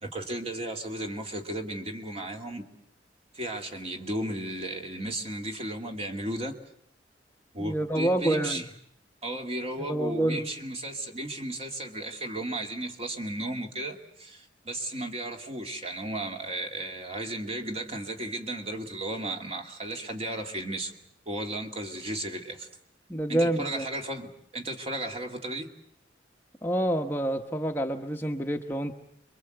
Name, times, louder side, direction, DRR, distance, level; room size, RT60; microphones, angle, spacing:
voice 1, 0.0-2.6 3.3-6.6 7.5-8.7 9.2-20.9 21.3-22.7 23.3-25.7, right 1 dB, 35° right, 3 dB, 2.4 m, -34 dB
voice 2, 7.6-8.6 9.8-10.4 23.1-23.9 26.6-28.9, right 1 dB, 10° left, 4 dB, 1.0 m, -27 dB
27.0 x 23.0 x 7.9 m, 0.71 s
head